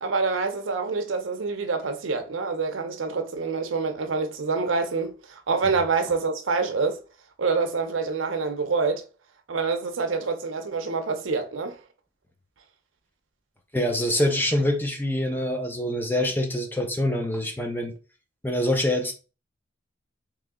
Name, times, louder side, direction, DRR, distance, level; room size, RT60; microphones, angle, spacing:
voice 1, 0.0-7.0 7.4-9.0 9.5-11.8, right 4 dB, 90° right, 0.7 m, -26 dB
voice 2, 13.7-17.9 18.4-19.1, left 1 dB, 10° left, 0.6 m, -25 dB
3.1 x 2.8 x 3.6 m
head